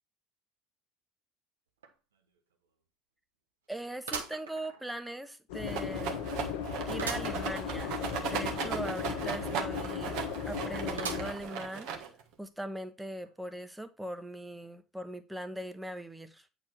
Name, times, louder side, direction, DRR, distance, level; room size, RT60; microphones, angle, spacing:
sound 1, 1.8-1.9 2.4-2.5 4.1-5.2 5.7-5.8 7.0-7.4 7.8-7.9 8.1-8.2 11.0-11.6 12.2-12.3 13.3-13.4, right 6 dB, 80° right, 1.1 m, -39 dB
voice 1, 3.7-6.2 6.9-7.9 8.2-10.2 10.5-11.9 12.4-16.5, right 1 dB, 5° right, 1.1 m, -40 dB
sound 2, 5.5-11.3, left 7 dB, 65° left, 1.2 m, -36 dB
Rattle, 5.7-12.3, right 7 dB, 60° right, 1.5 m, -37 dB
8.8 x 4.2 x 4.4 m
figure-of-eight pair, 65°, 0 cm